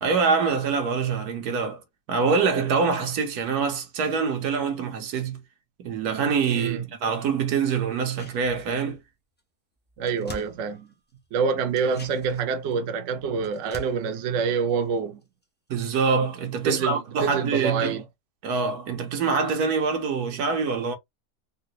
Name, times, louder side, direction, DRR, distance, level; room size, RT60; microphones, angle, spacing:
voice 1, 0.0-1.8 2.1-5.4 5.8-9.0 15.7-18.0 18.4-20.9, right 5 dB, 80° right, 1.3 m, -25 dB
voice 2, 6.5-6.8 10.0-10.9 11.3-15.2 16.6-18.0, right 5 dB, 65° right, 0.9 m, -26 dB
sound 1, 7.9-9.1 9.4-9.5 9.7-11.3 11.7-15.4 15.7-15.8, equal, 15° left, 0.4 m, -46 dB
3.7 x 2.2 x 2.7 m
omnidirectional pair, 1.6 m